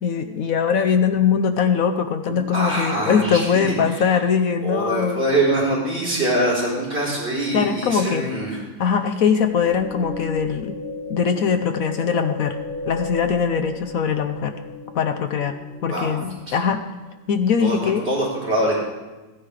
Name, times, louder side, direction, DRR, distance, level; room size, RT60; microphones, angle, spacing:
voice 1, 0.0-5.2 7.5-8.3 8.8-10.7 11.1-12.6 12.9-14.5 14.9-15.5 15.8-16.8 17.3-18.1, left 6 dB, 65° left, 7 dB, 0.9 m, -21 dB
voice 2, 2.5-4.0 4.6-8.6 15.9-16.1 17.6-18.8, right 1 dB, 30° right, -5 dB, 4.4 m, -23 dB
sound 1, 9.5-16.8, left 2 dB, 45° left, 3.3 m, -35 dB
14.0 x 10.0 x 4.9 m, 1.2 s
omnidirectional pair, 2.1 m